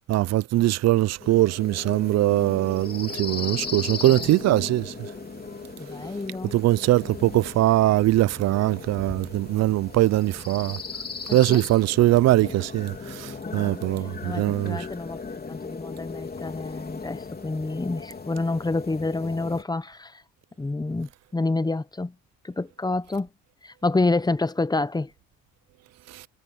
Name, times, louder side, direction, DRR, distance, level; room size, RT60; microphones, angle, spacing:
voice 1, 0.1-4.9 6.5-10.8 11.3-14.8, right 15 dB, 60° right, 0.4 m, -21 dB
sound 1, 1.2-19.6, left 4 dB, 30° left, 3.4 m, -37 dB
voice 2, 5.8-6.6 11.3-11.6 13.4-13.8 14.2-15.2 15.5-20.2 20.6-22.1 22.4-23.3 23.6-25.1, left 2 dB, 15° left, 0.8 m, -28 dB
cardioid pair, 90°, 30 cm